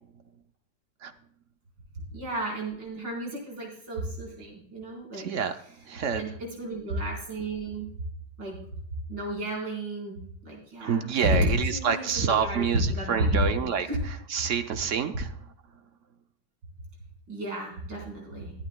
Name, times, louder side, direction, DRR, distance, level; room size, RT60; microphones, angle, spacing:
voice 1, 2.1-5.3 6.1-7.9 8.4-8.6 9.1-14.0 17.3-18.5, equal, 80° right, -2 dB, 5.0 m, -31 dB
voice 2, 5.2-6.2 10.8-15.3, right 7 dB, 65° right, 8 dB, 0.8 m, -28 dB
22.0 x 8.8 x 2.2 m, 0.63 s
omnidirectional pair, 2.0 m